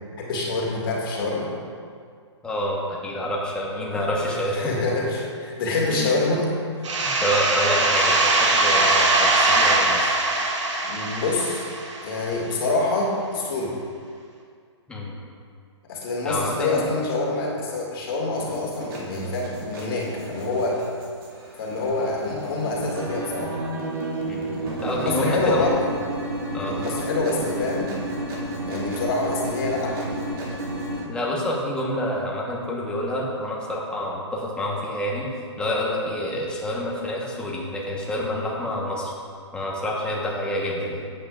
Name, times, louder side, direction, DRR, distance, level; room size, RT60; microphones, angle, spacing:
voice 1, 0.2-1.5 3.9-6.4 6.8-6.9 10.8-11.7 12.0-13.8 15.9-20.8 21.6-23.6 24.9-25.9 26.5-28.0 28.6-30.1, left 2 dB, 50° left, -2 dB, 2.0 m, -26 dB
voice 2, 2.4-4.6 5.9-6.2 7.0-10.1 14.9-15.1 16.2-16.9 24.3-24.5 24.8-25.7 26.5-26.8 31.0-35.3 35.6-39.1 39.5-41.0, equal, 5° left, -4 dB, 1.1 m, -28 dB
sound 1, 6.8-12.4, right 2 dB, 80° right, 1.3 m, -21 dB
sound 2, 18.4-31.0, right 1 dB, 50° right, 2.3 m, -32 dB
11.5 x 8.5 x 2.4 m, 2.2 s
hypercardioid pair, 155°, 15 cm